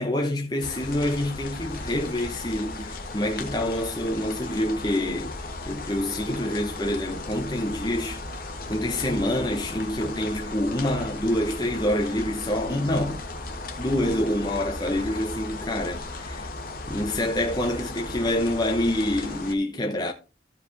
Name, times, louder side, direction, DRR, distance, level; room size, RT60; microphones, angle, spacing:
voice 1, 0.0-8.2 8.7-13.2 13.8-16.5 16.9-20.1, left 1 dB, 20° left, 1.0 m, -27 dB
sound 1, 0.6-19.5, left 2 dB, 50° left, 1.5 m, -36 dB
14.5 x 5.0 x 4.0 m
head